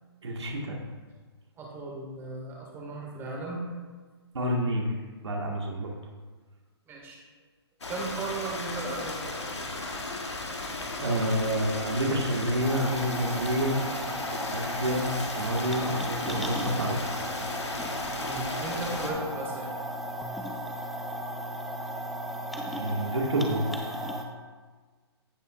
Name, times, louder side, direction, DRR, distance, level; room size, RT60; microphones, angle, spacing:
voice 1, 0.2-0.8 4.3-4.9 5.2-5.9 11.0-13.8 14.5-15.1 15.4-17.0 22.7-23.8, right 1 dB, 75° right, -1 dB, 1.8 m, -28 dB
voice 2, 1.6-3.8 6.9-7.2 7.9-9.5 18.2-19.7, right 2 dB, 15° right, -2 dB, 2.1 m, -36 dB
Stream, 7.8-19.1, left 2 dB, 90° left, 1.5 m, -35 dB
sound 1, 12.6-24.2, equal, ahead, 0.6 m, -35 dB
16.0 x 5.4 x 2.5 m, 1.4 s
hypercardioid pair, 140°, 14 cm